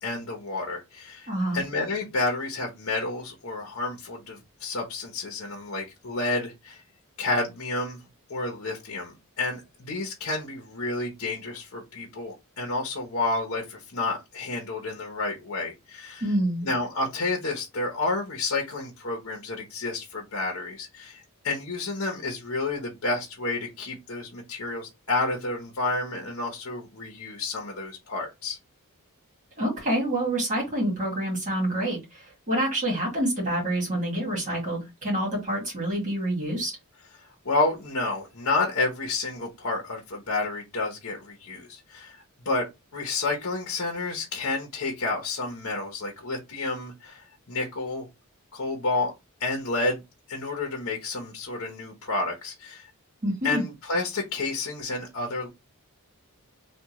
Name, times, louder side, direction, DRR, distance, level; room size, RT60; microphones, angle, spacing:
voice 1, 0.0-6.8 7.2-8.0 8.3-16.2 16.6-28.6 37.2-42.7 42.9-48.1 48.5-49.1 49.4-50.0 50.3-52.9 53.4-55.5, left 2 dB, 65° left, 0.9 m, -30 dB
voice 2, 1.3-1.6 16.2-16.7 29.6-36.8 53.2-53.6, right 1 dB, 35° right, 2.0 m, -27 dB
3.6 x 2.4 x 3.0 m
head